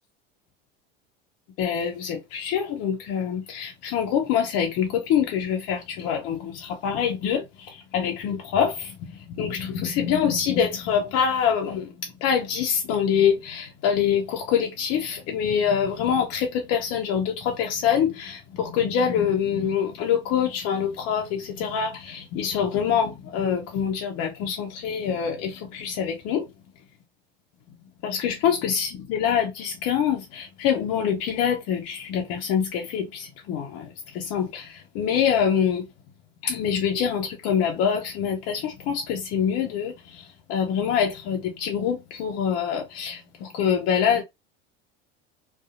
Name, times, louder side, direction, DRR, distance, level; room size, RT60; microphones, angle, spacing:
voice 1, 1.6-26.5 28.0-35.9 36.4-44.2, left 8 dB, 55° left, 0.6 m, -25 dB
2.6 x 2.3 x 2.4 m
hypercardioid pair, 80°, 30 cm